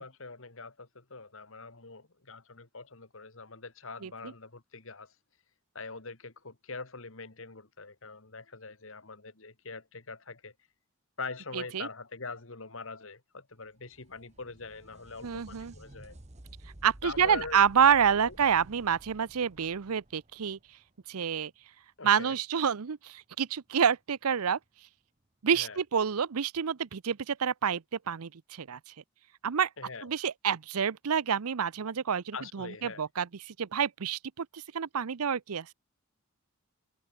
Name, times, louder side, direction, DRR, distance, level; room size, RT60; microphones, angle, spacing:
voice 1, 0.0-5.1 5.7-10.5 11.2-16.1 17.0-17.7 18.2-18.4 22.0-22.4 25.5-25.8 29.8-30.1 32.3-33.0, left 4 dB, 60° left, 2.0 m, -43 dB
voice 2, 4.0-4.3 11.5-11.9 15.2-15.7 16.8-20.6 21.1-21.5 22.0-24.6 25.4-28.9 29.4-29.7 30.0-35.7, right 7 dB, 85° right, 0.6 m, -28 dB
sound 1, 13.7-21.2 24.6-24.7 25.8-25.9, right 1 dB, 30° right, 1.3 m, -53 dB
head